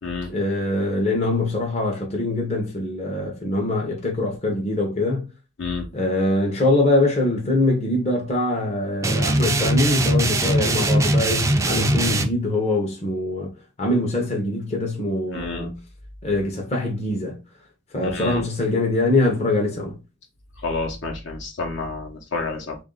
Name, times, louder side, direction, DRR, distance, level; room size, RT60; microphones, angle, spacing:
voice 1, 0.3-5.3 5.9-15.8 16.2-17.4 17.9-20.0, left 2 dB, 35° left, 0.8 m, -23 dB
sound 1, 9.0-12.3, right 1 dB, 15° right, 0.4 m, -20 dB
voice 2, 15.3-15.7 18.0-18.4 20.6-22.8, left 3 dB, 65° left, 1.0 m, -29 dB
3.1 x 2.6 x 3.7 m
head